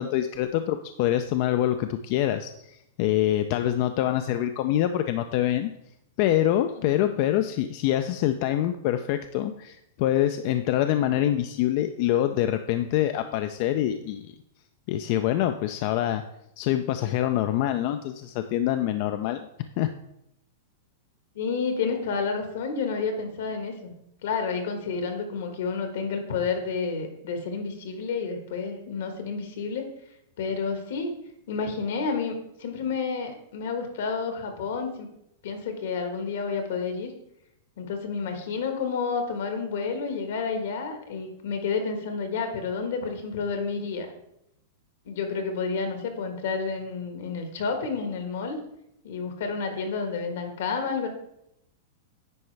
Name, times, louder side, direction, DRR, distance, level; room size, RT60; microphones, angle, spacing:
voice 1, 0.0-5.7 6.2-14.3 14.9-16.2 16.6-19.5 19.8-19.9, left 12 dB, 50° left, 8 dB, 0.4 m, -25 dB
voice 2, 21.3-23.9 24.2-29.9 30.4-31.1 31.5-35.1 35.4-37.1 37.8-44.1 45.0-48.6 49.0-51.1, left 5 dB, 70° left, 5 dB, 1.4 m, -30 dB
9.5 x 4.6 x 3.3 m, 0.80 s
hypercardioid pair, 130°, 0 cm